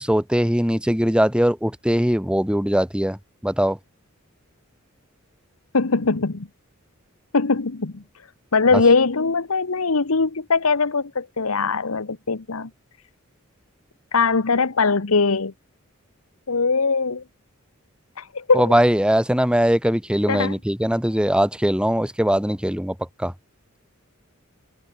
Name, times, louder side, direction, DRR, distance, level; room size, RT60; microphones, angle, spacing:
voice 1, 0.0-3.8 8.7-8.8 18.5-23.3, equal, 5° right, 2.3 m, -21 dB
voice 2, 5.7-6.5 7.3-8.0 8.5-12.7 14.1-15.5 16.5-17.2 18.2-18.7 20.3-20.5, left 4 dB, 85° left, 1.1 m, -21 dB
head